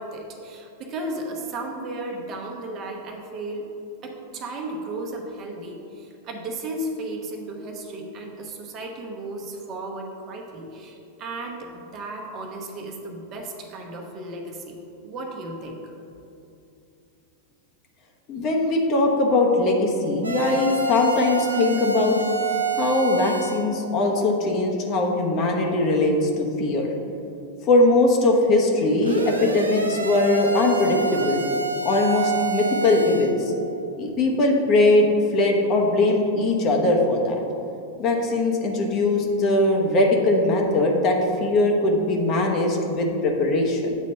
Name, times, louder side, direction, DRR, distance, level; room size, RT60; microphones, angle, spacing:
voice 1, 0.0-3.7 4.0-15.9, right 2 dB, 30° right, 1 dB, 1.0 m, -34 dB
voice 2, 18.3-22.2 22.8-26.9 27.7-31.4 31.8-33.5 34.0-35.1 35.3-37.4 38.0-43.9, left 2 dB, 35° left, 1 dB, 1.0 m, -21 dB
sound 1, 20.2-23.7 29.0-33.3, right 4 dB, 80° right, 0.6 m, -27 dB
8.4 x 4.1 x 5.5 m, 2.7 s
figure-of-eight pair, 90°, 0 cm